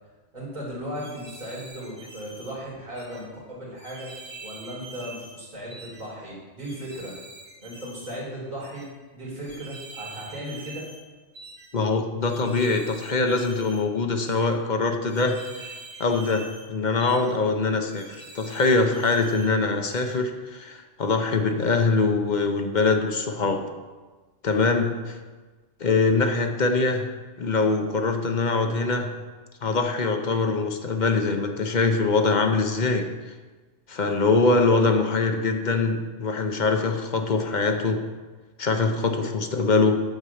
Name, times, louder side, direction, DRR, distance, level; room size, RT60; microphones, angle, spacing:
voice 1, 0.3-7.2 7.6-8.8 9.1-10.9, equal, 35° right, -7 dB, 3.2 m, -36 dB
sound 1, 0.9-2.5 2.9-3.2 3.8-5.4 5.7-6.1 6.6-8.2 8.6-8.9 9.4-11.0 11.3-11.7 12.2-13.8 14.2-14.5 15.1-16.7 17.0-17.3 17.9-19.5 19.9-20.2, right 3 dB, 90° right, 2.1 m, -45 dB
voice 2, 11.7-15.4 16.0-23.6 24.4-25.2 25.8-27.1 27.4-29.1 29.6-33.1 33.9-38.1 38.6-40.0, left 3 dB, 45° left, 5 dB, 0.8 m, -23 dB
9.2 x 4.8 x 6.9 m, 1.3 s
omnidirectional pair, 1.2 m